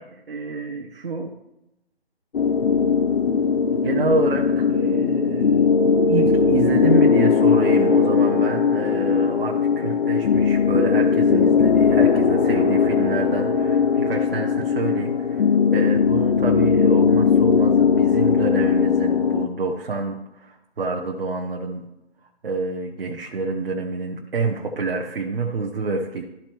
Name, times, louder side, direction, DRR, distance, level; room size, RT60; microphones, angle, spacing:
voice 1, 0.0-1.4 3.7-5.7 6.1-15.4 15.7-21.8 22.2-26.2, right 3 dB, 55° right, 0 dB, 1.2 m, -27 dB
sound 1, 2.3-19.5, left 6 dB, 60° left, 0.7 m, -19 dB
13.5 x 4.4 x 3.0 m, 0.91 s
figure-of-eight pair, 160°, 33 cm